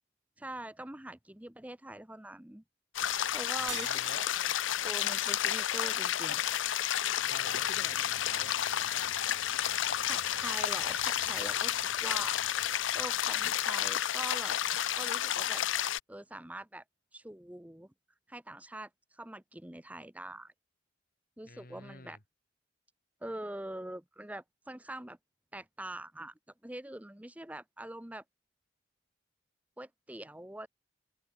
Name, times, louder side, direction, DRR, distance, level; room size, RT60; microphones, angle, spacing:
voice 1, 0.4-2.6 3.3-4.2 4.8-6.5 9.7-12.5 12.9-15.6 16.1-16.8 17.1-17.9 18.3-20.5 21.4-22.2 23.2-25.2 25.5-26.3 26.6-28.2 29.8-30.7, right 1 dB, 10° right, 0.8 m, -44 dB
sound 1, 2.9-16.0, left 11 dB, 80° left, 0.6 m, -31 dB
voice 2, 3.6-4.2 7.3-8.6 8.9-9.1 21.4-22.2, left 3 dB, 45° left, 3.0 m, -48 dB
sound 2, 3.7-6.3, right 12 dB, 65° right, 3.5 m, -48 dB
sound 3, 7.1-14.0, right 5 dB, 30° right, 1.7 m, -54 dB
head